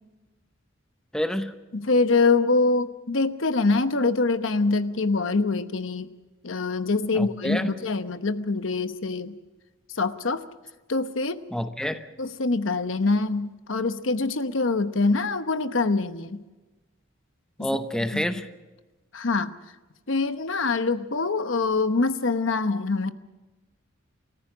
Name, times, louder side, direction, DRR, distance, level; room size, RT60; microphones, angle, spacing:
voice 1, 1.1-1.5 7.1-7.7 11.5-12.1 17.6-18.5, equal, 5° left, 8 dB, 0.9 m, -28 dB
voice 2, 1.7-6.1 6.4-9.3 10.0-10.4 10.9-11.4 12.2-16.4 17.6-17.7 18.1-18.2 19.1-19.5 20.1-23.1, left 3 dB, 75° left, 10 dB, 1.0 m, -24 dB
29.5 x 14.5 x 6.1 m, 1.2 s
head